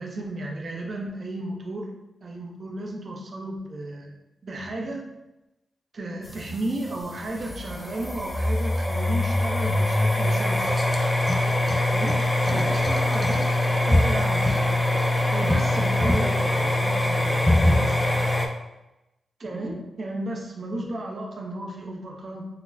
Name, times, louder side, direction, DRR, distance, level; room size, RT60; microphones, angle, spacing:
voice 1, 0.0-1.9 2.2-4.1 4.4-5.1 5.9-10.8 11.9-14.9 15.3-18.1 19.4-22.5, right 1 dB, 55° right, 0 dB, 0.6 m, -34 dB
sound 1, 6.2-18.5, left 1 dB, 10° left, 0.4 m, -23 dB
4.0 x 2.0 x 2.7 m, 0.95 s
cardioid pair, 75°, 0 cm